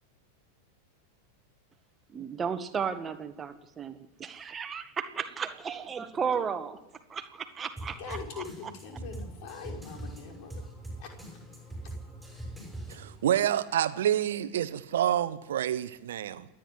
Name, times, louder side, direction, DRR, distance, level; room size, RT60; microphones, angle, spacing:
voice 1, 2.1-6.8 7.1-8.4, right 6 dB, 20° right, 9 dB, 1.7 m, -34 dB
sound 1, 7.8-13.3, right 1 dB, ahead, 6.7 m, -42 dB
voice 2, 8.0-10.6 11.0-11.1, left 6 dB, 45° left, 2 dB, 5.6 m, -42 dB
voice 3, 12.9-16.5, right 11 dB, 60° right, 13 dB, 1.1 m, -28 dB
28.0 x 10.5 x 9.7 m, 0.99 s
figure-of-eight pair, 90°, 0 cm